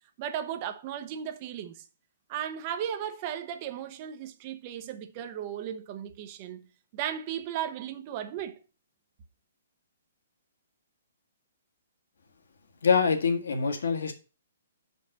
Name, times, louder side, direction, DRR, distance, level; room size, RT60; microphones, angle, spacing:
voice 1, 0.2-1.8 2.3-6.6 6.9-8.6, right 9 dB, 20° right, 0.7 m, -35 dB
voice 2, 12.8-14.1, left 5 dB, 80° left, 1.6 m, -24 dB
5.6 x 5.3 x 6.5 m
hypercardioid pair, 180°, 0 cm